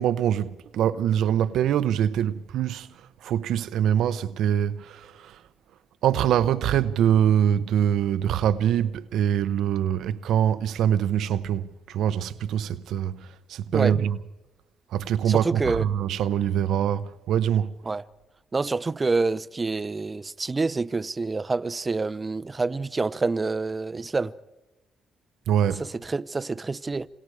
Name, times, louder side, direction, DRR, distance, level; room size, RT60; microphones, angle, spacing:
voice 1, 0.0-5.4 6.0-14.2 14.9-17.7 25.5-25.8, right 9 dB, 80° right, 0.8 m, -24 dB
voice 2, 15.3-15.8 17.9-18.0 18.5-24.3 25.8-27.1, right 3 dB, 25° right, 0.8 m, -27 dB
28.5 x 26.5 x 4.9 m
cardioid pair, 90°, 0 cm